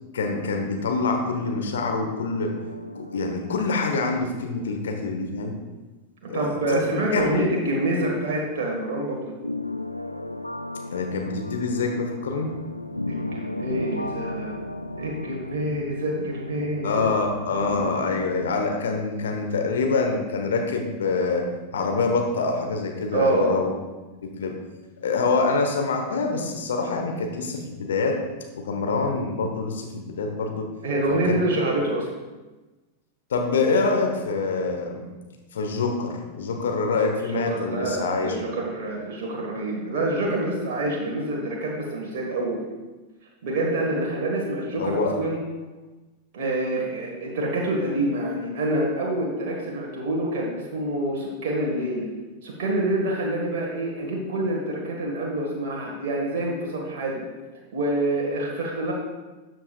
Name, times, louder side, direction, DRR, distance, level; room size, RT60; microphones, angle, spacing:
voice 1, 0.1-2.5 2.9-5.6 6.3-7.5 10.9-12.5 16.8-23.7 24.2-24.6 25.0-28.2 28.5-30.7 31.1-31.4 33.3-35.1 35.5-38.5 44.8-45.2, left 4 dB, 65° left, 3 dB, 1.1 m, -25 dB
sound 1, 1.3-4.7 4.9-5.0 9.4-18.0, left 2 dB, 85° left, 0.3 m, -35 dB
voice 2, 6.2-9.3 13.1-14.6 14.9-17.1 17.5-17.8 23.1-23.6 30.8-32.1 37.3-42.6 43.4-45.4 46.3-52.1 52.4-57.2 57.7-58.9, right 1 dB, 50° right, -2 dB, 1.6 m, -27 dB
12.5 x 7.7 x 2.4 m, 1.2 s
figure-of-eight pair, 90°, 0 cm